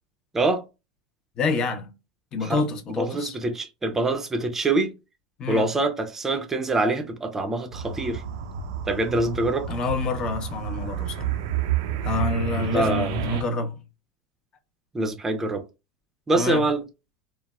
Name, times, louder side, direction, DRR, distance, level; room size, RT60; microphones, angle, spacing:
voice 1, 1.4-1.9 2.3-3.4 5.4-5.7 9.7-11.4 12.0-13.8 16.3-16.6, left 4 dB, 35° left, 0.6 m, -27 dB
voice 2, 3.0-4.9 5.5-8.2 8.9-9.7 12.6-13.2 14.9-15.6 16.3-16.8, right 2 dB, 15° right, 0.5 m, -25 dB
sound 1, 7.7-13.4, right 8 dB, 70° right, 0.5 m, -30 dB
3.2 x 2.0 x 2.2 m
supercardioid pair, 110°, 2 cm